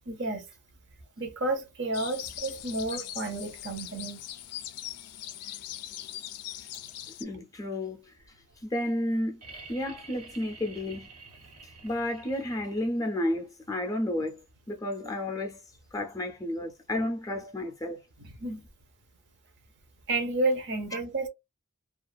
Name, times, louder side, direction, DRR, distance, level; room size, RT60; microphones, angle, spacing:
voice 1, 0.1-0.5 1.2-4.2 18.4-18.6 20.1-21.3, right 2 dB, 50° right, 0.7 m, -31 dB
sound 1, 1.9-7.2, left 13 dB, 90° left, 0.4 m, -41 dB
voice 2, 7.2-8.1 8.6-9.4 9.7-11.1 11.8-14.4 14.7-15.6 15.9-18.0 20.9-21.0, left 1 dB, 15° left, 0.5 m, -31 dB
sound 2, 9.4-13.2 14.9-15.0, right 3 dB, 90° right, 0.9 m, -49 dB
2.4 x 2.4 x 2.3 m
head